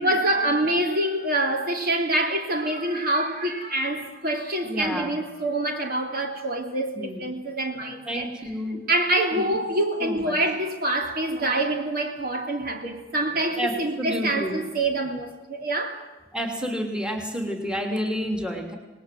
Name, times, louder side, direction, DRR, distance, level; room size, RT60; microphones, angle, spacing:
voice 1, 0.0-8.3 8.9-16.0, right 1 dB, 50° right, 3.0 m, -26 dB
voice 2, 4.6-5.1 6.9-7.2 8.1-8.9 9.3-9.4 10.0-10.4 13.6-14.6 16.3-18.8, equal, 5° right, 3.1 m, -30 dB
27.0 x 20.0 x 7.7 m
head